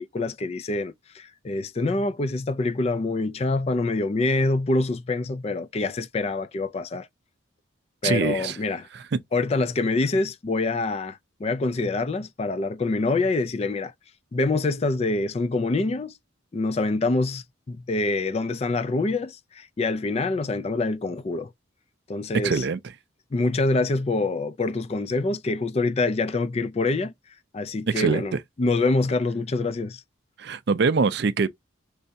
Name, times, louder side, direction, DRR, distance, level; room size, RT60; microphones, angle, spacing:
voice 1, 0.0-7.1 8.0-8.9 9.3-13.9 14.3-16.1 16.5-21.5 22.1-22.7 23.3-27.1 27.5-30.0, left 3 dB, 30° left, 0.3 m, -25 dB
voice 2, 8.0-8.6 8.9-9.0 22.4-22.8 27.9-28.4 30.4-31.5, right 4 dB, 55° right, 0.4 m, -23 dB
5.4 x 3.3 x 2.7 m
head